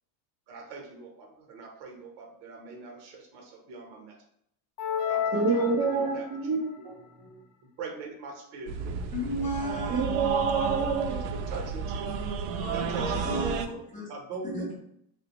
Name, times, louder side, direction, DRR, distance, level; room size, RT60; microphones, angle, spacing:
voice 1, 0.5-4.2 5.1-6.9 7.8-8.9 9.9-10.5 11.1-12.1 12.7-13.4 14.1-14.8, right 4 dB, 55° right, 0.9 m, -42 dB
sound 1, 4.8-6.4, left 8 dB, 55° left, 0.6 m, -31 dB
voice 2, 5.3-7.4 9.9-11.2, right 4 dB, 25° right, 0.5 m, -28 dB
sound 2, 8.7-13.7, right 6 dB, 85° right, 0.5 m, -32 dB
voice 3, 9.1-10.0 12.6-14.1 14.4-14.8, equal, 15° left, 0.6 m, -33 dB
3.4 x 2.1 x 2.9 m
cardioid pair, 145°, 47 cm